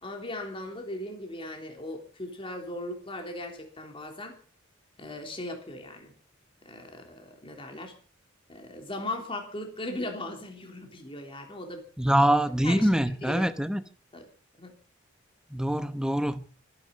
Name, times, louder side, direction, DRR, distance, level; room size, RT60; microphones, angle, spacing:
voice 1, 0.0-4.4 5.0-6.1 6.7-7.9 8.5-11.9 12.2-12.3 12.6-13.4 14.1-14.3 14.6-14.7, left 1 dB, 25° left, 3.4 m, -38 dB
voice 2, 12.0-13.8 15.5-16.4, right 1 dB, 5° right, 0.9 m, -24 dB
23.5 x 10.0 x 5.5 m
head